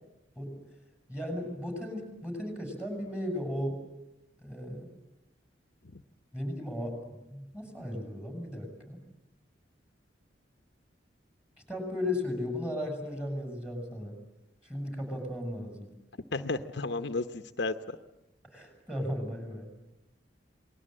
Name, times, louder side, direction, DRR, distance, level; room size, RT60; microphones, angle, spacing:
voice 1, 1.1-3.8 4.4-4.9 6.3-9.0 11.7-14.2 14.6-15.9 18.4-19.7, left 1 dB, 5° right, 5 dB, 6.4 m, -36 dB
voice 2, 16.3-17.7, left 3 dB, 65° left, 9 dB, 0.9 m, -32 dB
27.5 x 20.5 x 8.9 m, 0.92 s
head